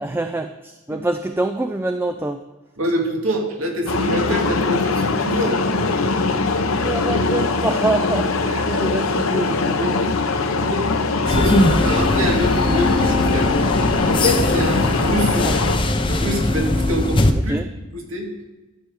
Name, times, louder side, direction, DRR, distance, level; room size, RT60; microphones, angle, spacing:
voice 1, 0.0-2.4 5.3-5.4 6.7-10.6 15.3-15.6 17.5-17.7, right 2 dB, 10° right, 7 dB, 0.3 m, -26 dB
voice 2, 2.8-5.6 8.5-8.8 10.6-10.8 11.2-13.5 14.0-15.4 16.1-17.5 17.9-18.3, equal, 80° right, 1 dB, 2.1 m, -25 dB
sound 1, 3.9-15.8, left 3 dB, 85° left, 0.8 m, -21 dB
sound 2, 11.2-17.3, left 1 dB, 25° left, 0.6 m, -20 dB
12.5 x 6.9 x 4.9 m, 1.1 s
head